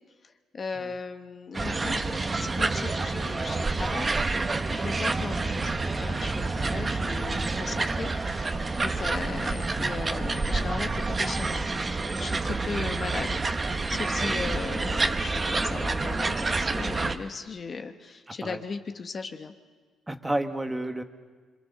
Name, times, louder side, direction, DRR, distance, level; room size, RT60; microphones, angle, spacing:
voice 1, 0.2-4.1 4.7-5.7 6.0-11.6 12.2-19.5, left 4 dB, 40° left, 7 dB, 1.2 m, -37 dB
sound 1, 1.5-17.2, right 3 dB, 30° right, 1.3 m, -28 dB
voice 2, 20.1-21.0, right 1 dB, 10° right, 6 dB, 1.5 m, -32 dB
26.0 x 25.0 x 6.7 m, 1.5 s
cardioid pair, 90°, 0 cm